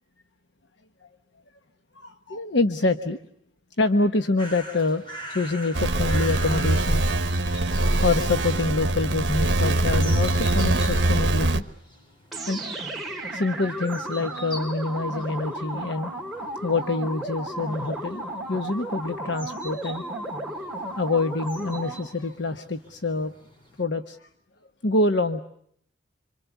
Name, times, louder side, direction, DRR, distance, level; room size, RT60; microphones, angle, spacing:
voice 1, 1.9-3.2 3.8-5.0 5.3-11.6 12.5-12.6 13.3-16.1 16.6-18.2 18.5-20.0 21.0-23.3 23.8-24.3 24.8-25.4, left 2 dB, 70° left, 7 dB, 1.1 m, -26 dB
sound 1, 4.4-23.8, equal, 25° left, 4.5 m, -45 dB
sound 2, 5.7-11.6, right 1 dB, 65° right, 1.4 m, -23 dB
sound 3, 12.3-22.2, right 1 dB, ahead, 3.4 m, -34 dB
27.0 x 26.0 x 8.2 m, 0.68 s
head